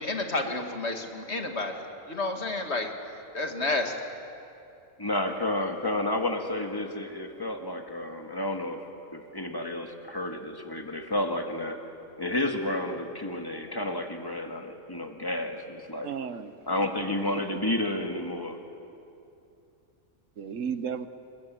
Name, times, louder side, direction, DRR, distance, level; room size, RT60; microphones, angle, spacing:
voice 1, 0.0-3.9, left 2 dB, 55° left, 4 dB, 2.3 m, -31 dB
voice 2, 5.0-8.8 9.1-11.8 12.2-16.1 16.7-18.6, left 1 dB, 15° left, 3 dB, 1.9 m, -31 dB
voice 3, 16.0-17.4 20.4-21.1, right 7 dB, 70° right, 11 dB, 1.3 m, -35 dB
28.0 x 22.0 x 7.7 m, 2.6 s
omnidirectional pair, 1.4 m